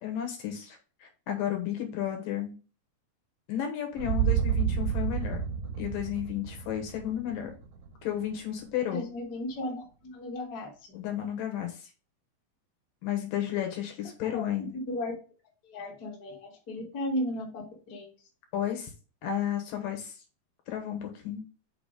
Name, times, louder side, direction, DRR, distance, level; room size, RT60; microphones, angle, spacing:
voice 1, 0.0-2.6 3.5-5.4 5.8-7.5 8.0-9.1 10.9-11.9 13.0-14.7 18.5-18.9 19.2-20.2 20.7-21.4, left 10 dB, 70° left, 3 dB, 2.7 m, -33 dB
sound 1, 4.0-8.0, right 9 dB, 70° right, 1.9 m, -30 dB
voice 2, 8.8-10.7 14.2-15.1 15.6-18.1, left 1 dB, 40° left, -1 dB, 1.5 m, -35 dB
5.9 x 4.0 x 5.0 m, 0.35 s
omnidirectional pair, 4.4 m